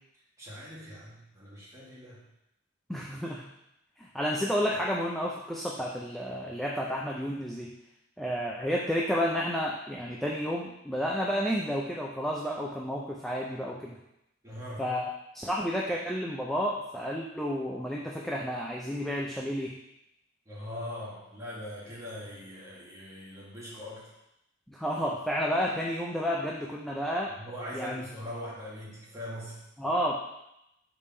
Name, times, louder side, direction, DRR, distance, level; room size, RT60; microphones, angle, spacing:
voice 1, 0.4-2.2 14.4-14.9 20.4-24.1 27.4-29.6, left 1 dB, 15° right, -7 dB, 1.9 m, -41 dB
voice 2, 2.9-3.5 4.0-7.7 8.2-14.0 14.8-19.7 24.7-27.3 27.7-28.0 29.8-30.2, equal, ahead, -3 dB, 0.4 m, -31 dB
5.1 x 3.5 x 5.5 m, 0.85 s
head